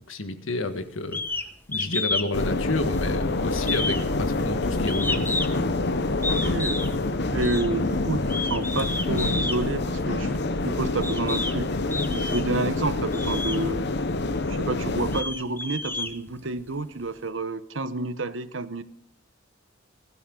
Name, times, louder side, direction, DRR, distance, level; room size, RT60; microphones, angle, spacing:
voice 1, 0.1-1.2 1.7-5.3, left 2 dB, 85° left, 8 dB, 1.6 m, -30 dB
sound 1, 1.1-1.5 1.7-2.3 2.6-3.2 3.6-5.7 6.2-6.9 7.4-7.7 8.2-9.6 10.4-10.5 11.0-11.6 11.9-12.6 13.1-13.6 14.2-14.3 14.9-16.7, left 2 dB, 10° left, 1.0 m, -30 dB
sound 2, 2.3-15.2, left 2 dB, 60° left, 0.9 m, -27 dB
voice 2, 6.3-6.8 7.3-11.8 12.1-13.8 14.5-18.8, right 2 dB, 70° right, 13 dB, 1.0 m, -30 dB
20.5 x 13.5 x 3.9 m, 0.65 s
head